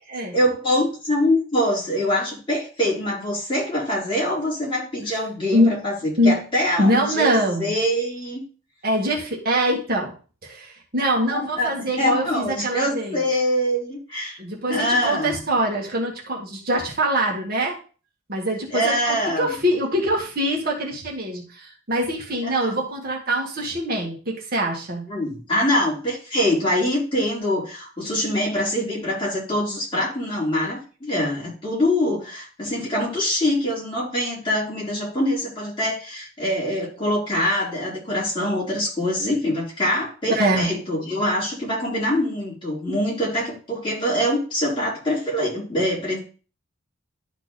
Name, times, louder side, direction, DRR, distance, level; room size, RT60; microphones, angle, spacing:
voice 1, 0.3-8.4 11.3-14.4 14.7-15.4 18.7-19.6 25.1-46.2, left 1 dB, 25° left, -6 dB, 4.8 m, -24 dB
voice 2, 6.8-7.7 8.8-10.1 10.4-13.2 14.4-17.8 18.3-25.1 40.3-40.7, equal, 50° right, -1 dB, 2.0 m, -23 dB
12.0 x 4.5 x 4.2 m, 0.37 s
head